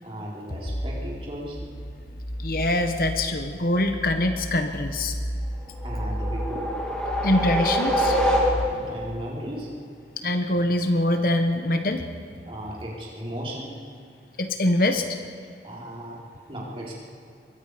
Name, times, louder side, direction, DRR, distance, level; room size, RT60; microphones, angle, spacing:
voice 1, 0.0-1.6 5.8-6.7 8.6-9.8 12.5-13.7 15.6-16.9, equal, 30° right, -5 dB, 4.7 m, -36 dB
sound 1, 0.6-8.7, equal, 70° left, 2.1 m, -33 dB
voice 2, 2.4-5.1 7.2-8.2 10.2-12.0 14.4-15.1, left 1 dB, 55° left, 6 dB, 1.2 m, -24 dB
sound 2, 5.7-9.0, equal, 5° left, 3.0 m, -25 dB
26.0 x 22.5 x 5.2 m, 2.4 s
head